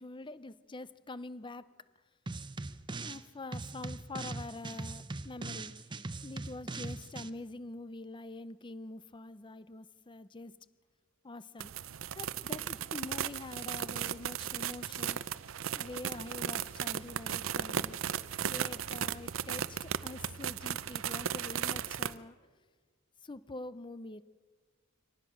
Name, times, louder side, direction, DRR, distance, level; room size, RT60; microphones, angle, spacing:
voice 1, 0.0-1.7 3.0-5.7 6.2-10.5 11.2-11.7 12.2-15.2 15.7-18.0 18.5-22.3 23.2-24.2, left 2 dB, 25° left, 0.6 m, -45 dB
sound 1, 2.3-3.2 3.5-7.3, right 3 dB, 25° right, 0.7 m, -41 dB
sound 2, 11.6-22.1, right 8 dB, 75° right, 0.6 m, -36 dB
24.5 x 18.5 x 6.3 m
head